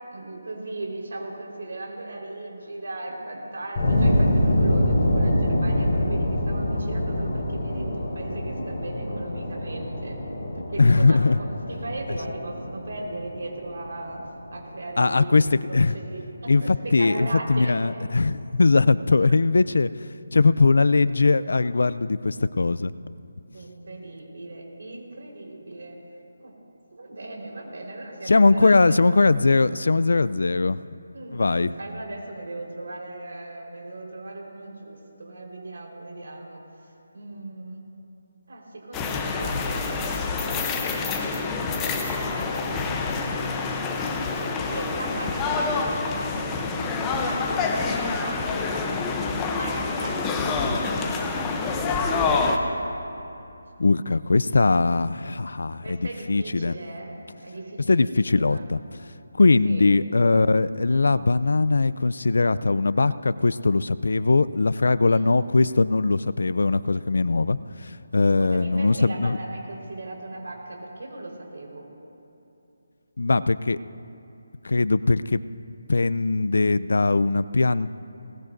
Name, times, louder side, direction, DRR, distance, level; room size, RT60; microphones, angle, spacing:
voice 1, 0.1-10.2 10.5-14.2 14.5-17.8 23.5-26.0 26.4-26.5 26.9-29.2 31.1-36.6 37.1-37.8 38.5-41.0 41.4-43.8 44.4-45.8 46.7-48.8 49.5-50.8 55.8-58.7 59.6-59.8 65.0-65.3 68.4-71.9, right 2 dB, 65° right, -1 dB, 4.3 m, -38 dB
sound 1, 3.8-14.5, left 1 dB, 25° left, 3.9 m, -25 dB
voice 2, 10.8-11.4 15.0-15.9 16.5-19.9 20.3-22.9 28.3-30.8 31.3-31.7 53.8-56.7 57.9-58.8 59.4-67.6 67.9-69.4 73.2-73.8 74.6-75.4 75.9-77.9, left 3 dB, 70° left, 16 dB, 0.4 m, -20 dB
sound 2, 38.9-52.6, left 4 dB, 10° left, 0.7 m, -27 dB
21.0 x 19.0 x 2.6 m, 2.8 s
figure-of-eight pair, 170°, 0 cm